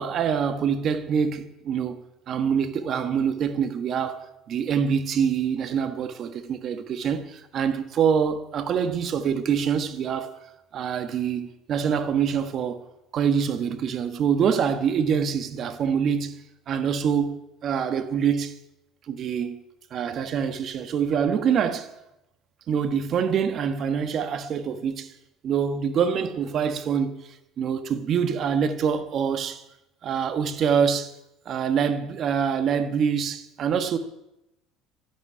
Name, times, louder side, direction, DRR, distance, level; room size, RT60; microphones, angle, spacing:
voice 1, 0.0-10.4 10.7-12.8 13.1-18.5 19.1-19.6 19.9-21.9 22.7-25.1 25.4-29.6 30.0-31.1 31.4-34.0, right 7 dB, 45° right, 1.5 m, -25 dB
12.0 x 10.5 x 9.8 m
cardioid pair, 125°, 0 cm